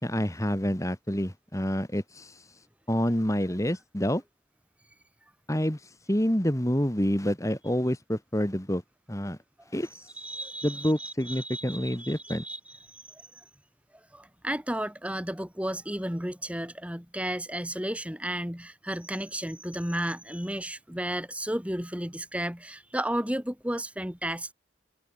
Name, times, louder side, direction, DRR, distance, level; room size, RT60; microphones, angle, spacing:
voice 1, 0.0-2.4 2.9-4.2 5.5-5.8 6.1-8.8 9.1-9.4 9.7-9.9 10.6-12.4, equal, 15° left, 2.4 m, -27 dB
voice 2, 10.2-12.6 14.1-24.5, right 1 dB, 5° right, 2.7 m, -33 dB
head